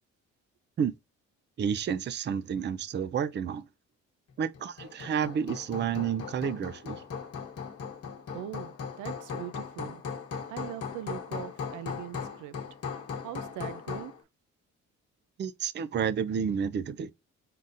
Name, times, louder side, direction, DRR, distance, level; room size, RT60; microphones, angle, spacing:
voice 1, 1.6-3.7 4.4-7.0 15.4-17.1, right 7 dB, 35° right, 0.4 m, -30 dB
Hammer, 4.5-14.2, left 6 dB, 50° left, 1.2 m, -38 dB
voice 2, 8.3-10.0 10.5-12.6 12.8-14.2, right 12 dB, 85° right, 0.5 m, -41 dB
4.0 x 3.7 x 2.5 m
cardioid pair, 90°, 30 cm